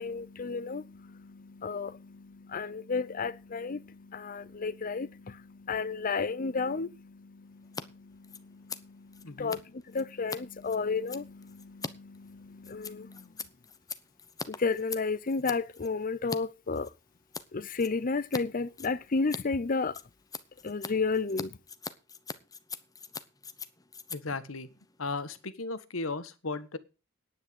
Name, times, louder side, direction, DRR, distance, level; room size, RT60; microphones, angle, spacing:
voice 1, 0.0-13.3 14.5-16.9 17.5-20.0 20.6-21.5, left 4 dB, 45° left, 0.6 m, -33 dB
Scissors, 7.6-7.8 8.1-16.4 16.7-17.5 17.8-18.4 18.7-25.5, left 4 dB, 20° left, 0.9 m, -42 dB
voice 2, 9.2-9.5 24.1-24.7 25.0-26.8, left 3 dB, 85° left, 1.4 m, -36 dB
10.0 x 9.0 x 8.0 m
head